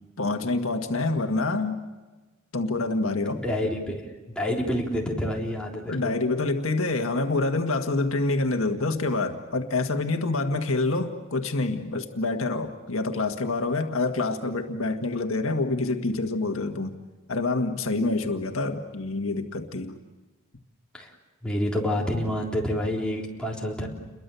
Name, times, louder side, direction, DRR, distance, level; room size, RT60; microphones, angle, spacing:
voice 1, 0.2-1.8 2.5-3.4 5.9-17.0 17.3-20.0, left 2 dB, 80° left, 5 dB, 1.8 m, -27 dB
voice 2, 3.4-4.0 4.3-6.1 20.9-21.1 21.4-23.9, left 1 dB, 5° left, -3 dB, 3.7 m, -28 dB
30.0 x 22.5 x 7.0 m, 1.2 s
head